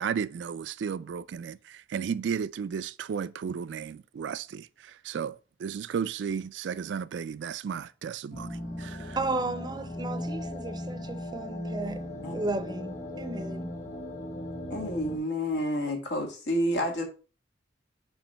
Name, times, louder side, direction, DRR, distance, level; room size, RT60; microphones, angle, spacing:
voice 1, 0.0-9.2, right 7 dB, 75° right, 0.3 m, -34 dB
sound 1, 8.3-15.2, left 1 dB, 40° left, 1.5 m, -37 dB
voice 2, 9.2-12.0 12.3-13.8, right 2 dB, 25° right, 0.5 m, -34 dB
voice 3, 14.7-17.0, equal, 90° left, 2.0 m, -29 dB
7.0 x 3.0 x 5.6 m
head